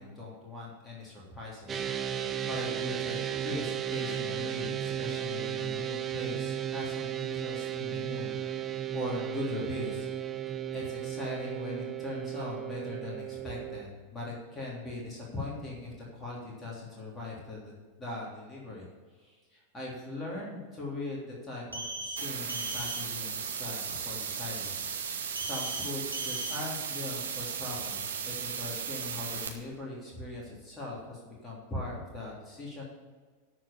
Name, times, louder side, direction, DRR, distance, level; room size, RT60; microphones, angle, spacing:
voice 1, 0.0-2.1 2.5-8.5 8.9-10.3 10.7-18.9 19.2-24.7 25.0-32.8, left 2 dB, 15° left, -5 dB, 3.2 m, -40 dB
sound 1, 1.7-13.8, right 10 dB, 25° right, 0.8 m, -35 dB
sound 2, 21.7-22.2 22.5-23.0 25.3-25.8 26.1-26.6, right 1 dB, 85° right, 1.5 m, -37 dB
sound 3, 22.2-29.5, right 7 dB, 65° right, 1.4 m, -36 dB
13.5 x 4.9 x 7.0 m, 1.5 s
figure-of-eight pair, 90°, 0 cm